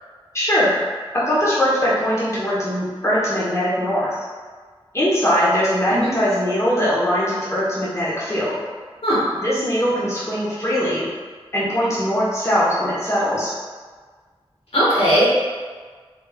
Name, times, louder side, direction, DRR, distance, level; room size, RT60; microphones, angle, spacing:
voice 1, 0.3-0.7 1.1-4.2 4.9-8.5 9.4-11.1 11.5-13.5, equal, 30° left, -9 dB, 1.1 m, -21 dB
voice 2, 14.7-15.4, equal, 75° left, -9 dB, 1.1 m, -18 dB
3.3 x 3.3 x 2.3 m, 1.5 s
wide cardioid pair, 55°, 10 cm